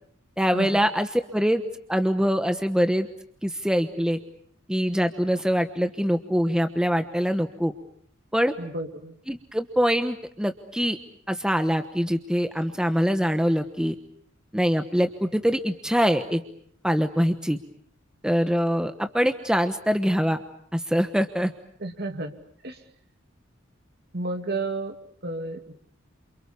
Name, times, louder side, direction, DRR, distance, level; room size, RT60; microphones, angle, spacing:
voice 1, 0.4-1.6 1.9-3.1 3.4-4.2 4.7-7.7 8.3-8.5 9.3-11.0 11.3-13.9 14.5-16.4 16.8-17.6 18.2-20.4 20.7-21.5, equal, 5° right, 8 dB, 1.2 m, -24 dB
voice 2, 8.6-9.1 21.8-22.3 22.6-22.8 24.1-24.9 25.2-25.8, right 2 dB, 55° right, 5 dB, 2.6 m, -31 dB
29.0 x 28.0 x 7.0 m, 0.65 s
head